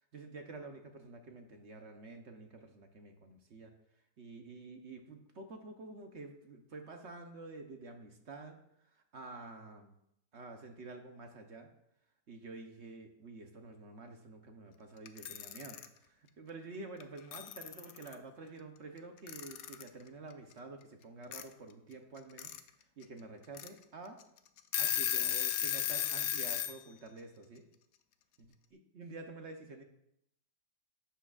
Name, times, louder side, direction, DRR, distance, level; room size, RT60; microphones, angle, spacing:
voice 1, 0.1-3.7 4.2-8.6 8.8-10.0 10.3-11.7 12.3-22.5 23.0-24.2 24.8-27.6 28.4-29.8, right 3 dB, 50° right, 4 dB, 1.0 m, -49 dB
Alarm / Clock, 15.1-15.9 17.0-17.1 17.3-18.1 19.3-19.9 21.3-21.4 22.2-22.6 23.0-23.1 23.5-23.7 24.2-24.3 24.6-26.7, left 11 dB, 70° left, 1.0 m, -34 dB
11.5 x 8.5 x 2.4 m, 0.76 s
omnidirectional pair, 1.8 m